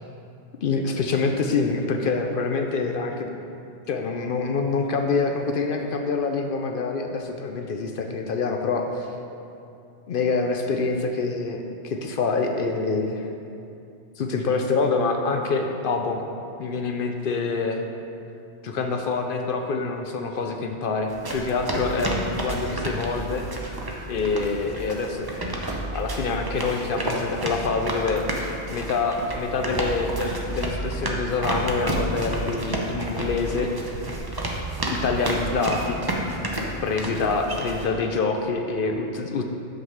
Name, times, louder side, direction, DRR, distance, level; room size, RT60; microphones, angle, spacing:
voice 1, 0.6-3.3 3.9-9.1 10.1-13.3 14.2-16.2 16.6-17.8 18.6-23.4 24.1-25.3 25.7-28.2 28.7-33.7 34.9-36.0 36.8-39.4, left 4 dB, 60° left, 4 dB, 0.6 m, -26 dB
sound 1, 21.1-37.9, right 1 dB, 25° right, 0.6 m, -30 dB
5.7 x 5.4 x 6.3 m, 2.7 s
omnidirectional pair, 1.2 m